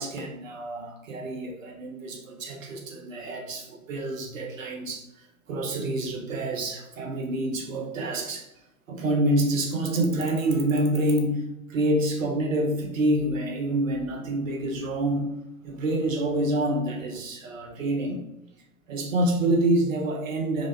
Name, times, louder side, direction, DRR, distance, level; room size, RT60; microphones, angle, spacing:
voice 1, 0.0-5.1 5.5-8.5 8.9-15.3 15.6-18.2 18.9-20.7, right 1 dB, 65° right, 1 dB, 0.7 m, -27 dB
3.2 x 2.1 x 2.4 m, 0.91 s
figure-of-eight pair, 95°, 43 cm